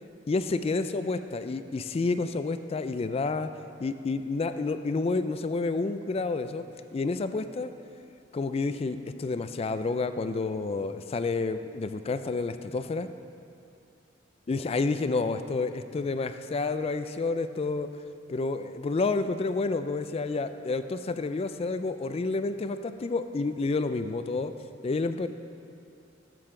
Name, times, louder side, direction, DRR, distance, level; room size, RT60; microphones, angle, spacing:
voice 1, 0.3-3.5 3.8-6.6 6.9-7.7 8.3-13.1 14.5-17.9 18.3-24.5 24.8-25.3, left 3 dB, 30° left, 10 dB, 0.3 m, -29 dB
13.0 x 7.7 x 3.8 m, 2.5 s
head